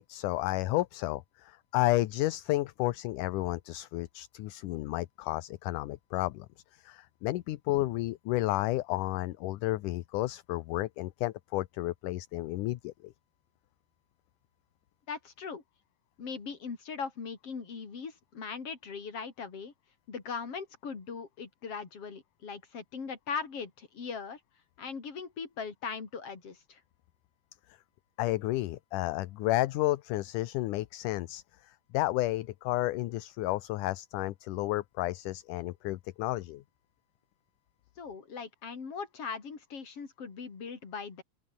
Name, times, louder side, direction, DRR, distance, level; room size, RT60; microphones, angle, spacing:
voice 1, 0.0-6.5 6.7-13.1 28.2-31.4 31.9-36.6, left 17 dB, 75° left, 2.3 m, -31 dB
voice 2, 15.1-15.6 16.2-19.7 20.1-24.4 24.8-26.8 38.0-41.2, left 5 dB, 45° left, 4.5 m, -40 dB
open air
omnidirectional pair, 3.8 m